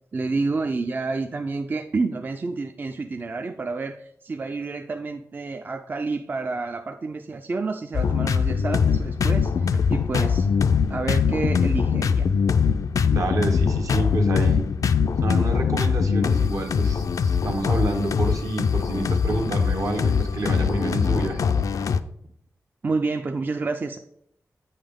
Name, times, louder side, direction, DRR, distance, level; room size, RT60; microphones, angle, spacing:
voice 1, 0.1-10.5 10.9-12.3 22.8-24.0, right 3 dB, 35° right, 7 dB, 0.3 m, -29 dB
sound 1, 7.9-22.0, left 6 dB, 80° left, 0.3 m, -22 dB
voice 2, 13.1-14.7 15.2-21.5, right 2 dB, 70° right, 3 dB, 1.0 m, -28 dB
8.6 x 5.5 x 3.5 m, 0.72 s
wide cardioid pair, 135°, 6 cm